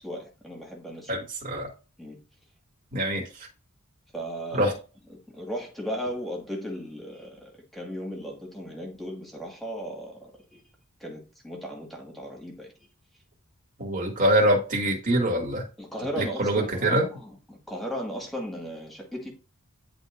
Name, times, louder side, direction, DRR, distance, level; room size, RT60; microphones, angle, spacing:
voice 1, 0.0-1.1 2.0-2.2 4.1-4.7 5.1-10.6 11.0-12.7 15.8-19.3, equal, ahead, 1.9 m, -36 dB
voice 2, 1.1-1.7 2.9-3.3 4.5-4.7 13.8-15.6 16.2-17.1, right 1 dB, 35° right, 2.4 m, -24 dB
10.5 x 3.6 x 2.6 m
head